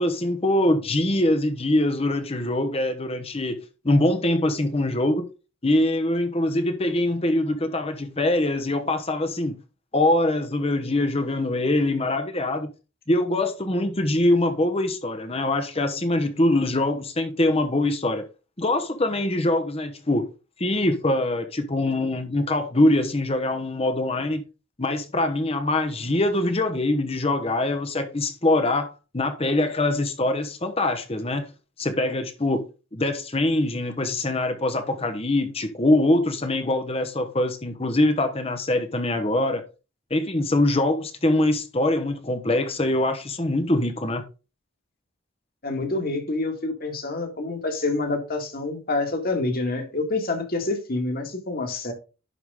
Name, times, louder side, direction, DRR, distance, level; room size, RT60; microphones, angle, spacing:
voice 1, 0.0-3.6 3.8-5.3 5.6-9.5 9.9-12.7 13.1-18.3 18.6-20.3 20.6-24.4 24.8-31.5 31.8-32.6 32.9-39.6 40.1-44.2, left 1 dB, 30° left, 0.9 m, -23 dB
voice 2, 45.6-51.9, left 2 dB, 45° left, 1.9 m, -27 dB
11.0 x 4.9 x 3.6 m
head